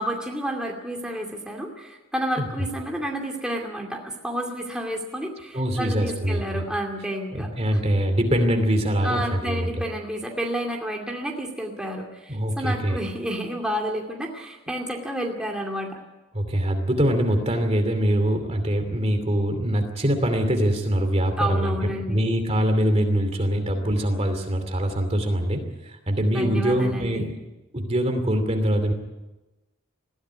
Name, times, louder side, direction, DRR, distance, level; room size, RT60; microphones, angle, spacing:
voice 1, 0.0-7.8 9.0-16.0 21.4-22.2 26.3-27.3, right 1 dB, 5° right, 0 dB, 2.5 m, -30 dB
voice 2, 5.5-6.6 7.3-9.8 12.3-13.0 16.3-21.8 22.1-27.4 27.7-28.9, equal, 30° right, 6 dB, 2.7 m, -23 dB
20.5 x 15.0 x 9.6 m, 1.1 s
head